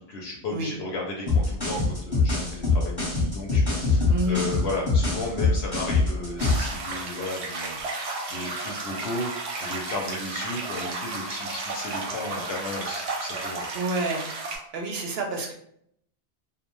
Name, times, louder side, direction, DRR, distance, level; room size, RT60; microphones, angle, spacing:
voice 1, 0.0-13.6, left 2 dB, 70° left, -1 dB, 0.8 m, -34 dB
sound 1, 1.3-6.7, left 3 dB, 25° left, 0.8 m, -23 dB
sound 2, 3.6-5.6 7.6-9.6 11.4-13.5, right 2 dB, 20° right, 0.4 m, -46 dB
voice 2, 4.1-4.4 13.7-14.3 14.7-15.5, right 1 dB, 70° right, 1 dB, 0.7 m, -28 dB
sound 3, 6.4-14.6, right 3 dB, 90° right, 1.0 m, -33 dB
2.5 x 2.1 x 3.0 m, 0.70 s
omnidirectional pair, 1.1 m